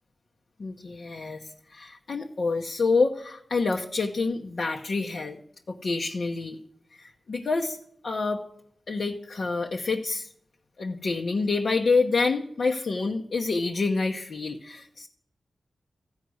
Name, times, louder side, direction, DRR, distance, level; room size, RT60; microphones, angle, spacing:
voice 1, 0.6-5.4 5.8-6.6 6.9-7.8 8.0-8.4 8.9-10.3 10.8-15.1, left 3 dB, 60° left, 2 dB, 1.0 m, -27 dB
14.5 x 9.8 x 6.3 m, 0.70 s
wide cardioid pair, 125°, 0 cm